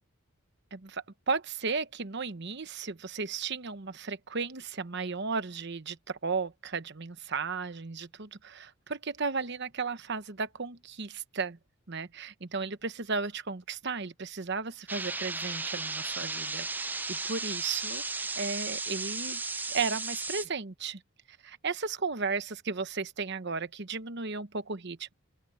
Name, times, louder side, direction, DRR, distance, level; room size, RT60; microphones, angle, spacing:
voice 1, 0.7-11.6 11.9-21.0 21.3-25.1, right 4 dB, 55° right, 1.0 m, -35 dB
sound 1, 14.9-20.4, right 3 dB, 10° right, 0.3 m, -35 dB
open air
head